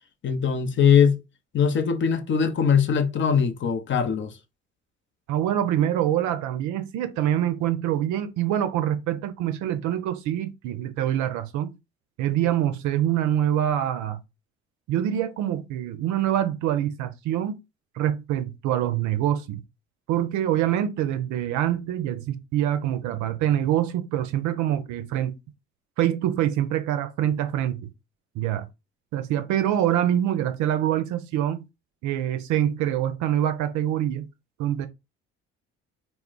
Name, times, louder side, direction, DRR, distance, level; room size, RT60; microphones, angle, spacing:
voice 1, 0.2-1.2 1.5-4.3, left 7 dB, 35° left, 0.6 m, -21 dB
voice 2, 5.3-11.7 12.2-14.2 14.9-17.6 18.0-19.6 20.1-25.4 26.0-27.9 28.4-28.7 29.1-31.6 32.0-34.3 34.6-34.9, right 11 dB, 60° right, 0.6 m, -25 dB
2.3 x 2.0 x 3.7 m
hypercardioid pair, 55°, 33 cm